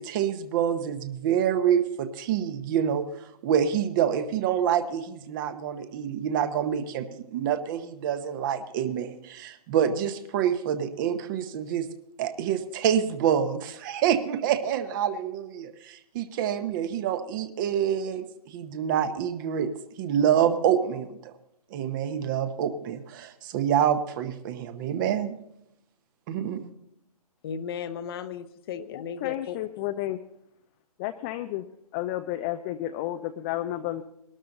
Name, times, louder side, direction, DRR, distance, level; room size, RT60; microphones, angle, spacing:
voice 1, 0.0-11.9 12.2-19.7 20.0-21.3 21.7-25.3 26.3-26.7, right 9 dB, 30° right, 11 dB, 1.0 m, -27 dB
voice 2, 27.4-29.6, left 7 dB, 40° left, 11 dB, 0.8 m, -35 dB
voice 3, 29.2-30.2 31.0-31.6 31.9-34.0, left 14 dB, 20° left, 8 dB, 0.4 m, -31 dB
19.5 x 12.5 x 3.9 m, 0.79 s
figure-of-eight pair, 130°, 20 cm